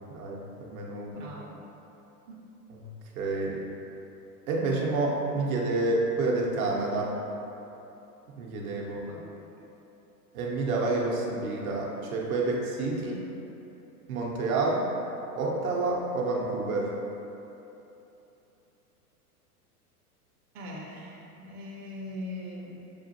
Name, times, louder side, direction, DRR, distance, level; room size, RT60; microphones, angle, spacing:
voice 1, 0.1-1.2 2.7-2.9 3.1-3.6 4.5-7.1 8.3-9.0 10.3-13.2 14.1-14.8 15.3-16.9, right 3 dB, 60° right, -2 dB, 0.8 m, -29 dB
voice 2, 1.1-1.6 2.3-2.4 9.1-9.3 20.5-22.8, left 1 dB, 25° right, -4 dB, 0.6 m, -41 dB
6.5 x 2.4 x 2.7 m, 3.0 s
hypercardioid pair, 100°, 47 cm